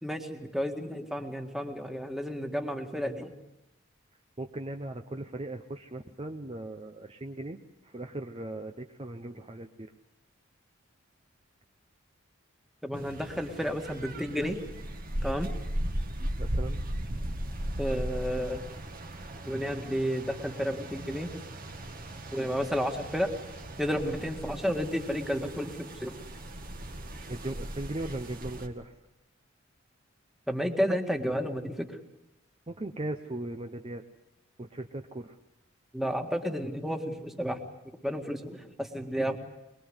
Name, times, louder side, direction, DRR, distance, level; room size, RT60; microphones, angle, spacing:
voice 1, 0.0-3.3 12.8-14.7 15.2-15.5 17.8-18.6 19.5-21.3 22.3-23.3 23.8-26.1 30.5-32.0 35.9-37.6 38.0-39.4, equal, ahead, 4 dB, 1.8 m, -31 dB
voice 2, 4.4-7.6 7.8-9.9 16.2-16.8 17.0-17.5 27.3-28.9 32.7-34.0 34.6-35.4, right 1 dB, 30° right, 5 dB, 0.8 m, -38 dB
sound 1, 12.9-28.7, right 1 dB, 45° right, 1.9 m, -37 dB
22.5 x 21.5 x 8.0 m, 0.91 s
head